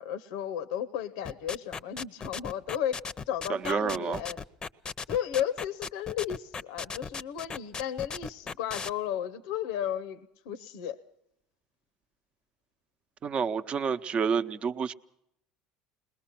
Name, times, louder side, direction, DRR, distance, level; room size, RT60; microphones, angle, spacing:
voice 1, 0.0-3.0 3.3-4.4 5.1-10.2 10.5-11.0, left 10 dB, 80° left, 12 dB, 0.7 m, -33 dB
sound 1, 1.2-8.9, left 5 dB, 30° left, 0.7 m, -37 dB
voice 2, 3.5-4.2 13.2-14.9, right 6 dB, 40° right, 11 dB, 0.8 m, -29 dB
22.0 x 20.0 x 5.9 m, 0.79 s
supercardioid pair, 90°, 3 cm